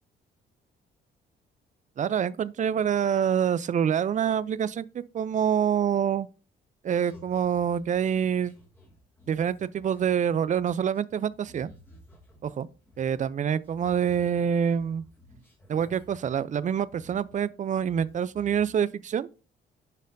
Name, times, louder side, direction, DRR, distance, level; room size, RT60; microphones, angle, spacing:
voice 1, 2.0-6.3 6.8-8.5 9.3-11.7 12.4-12.7 13.0-15.0 15.7-19.3, right 8 dB, 40° right, 0.4 m, -26 dB
sound 1, 6.9-13.3 13.6-17.5 17.7-18.7, left 1 dB, 10° left, 2.0 m, -54 dB
10.5 x 4.2 x 2.6 m
cardioid pair, 90°, 20 cm